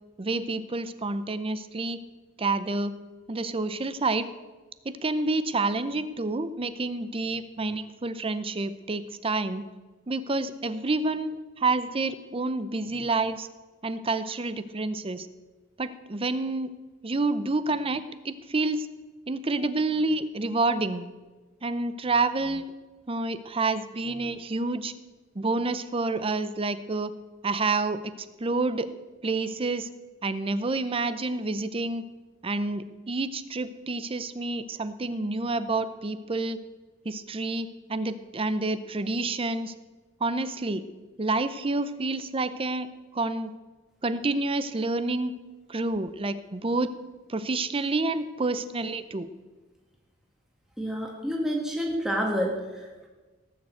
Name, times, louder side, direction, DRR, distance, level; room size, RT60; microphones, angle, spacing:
voice 1, 0.2-2.0 2.4-2.9 3.3-4.3 4.8-9.6 10.1-13.5 13.8-15.3 15.8-16.7 17.0-18.9 19.3-21.1 21.6-22.7 23.1-24.9 25.4-27.1 27.4-28.0 28.4-28.9 29.2-29.9 30.2-32.0 32.4-36.6 37.0-39.7 40.2-40.8 41.2-42.9 43.1-43.5 44.0-45.3 45.7-46.9 47.3-49.3, right 3 dB, 25° right, 13 dB, 0.6 m, -28 dB
voice 2, 50.8-53.1, equal, ahead, -1 dB, 1.7 m, -29 dB
17.5 x 7.0 x 8.0 m, 1.3 s
head